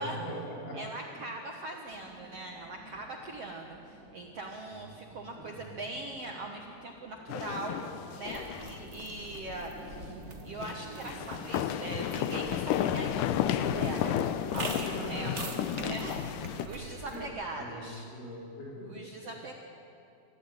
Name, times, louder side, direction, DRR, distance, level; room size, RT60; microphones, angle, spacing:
voice 1, 0.0-0.8 1.2-1.3 4.7-5.1 5.4-5.8 8.5-8.6 14.9-15.6 17.0-19.0 19.2-19.3, equal, 55° left, -4 dB, 6.1 m, -42 dB
voice 2, 0.7-7.9 8.1-10.2 10.4-18.1 18.9-19.5, right 2 dB, 60° right, 1 dB, 1.6 m, -41 dB
sound 1, 1.9-16.2, right 1 dB, ahead, 4.7 m, -51 dB
sound 2, 7.3-8.8 9.1-9.2 10.6-16.7, left 10 dB, 85° left, 1.8 m, -32 dB
sound 3, 8.2-17.3, right 2 dB, 85° right, 0.6 m, -45 dB
25.0 x 14.0 x 9.0 m, 2.7 s
omnidirectional pair, 4.6 m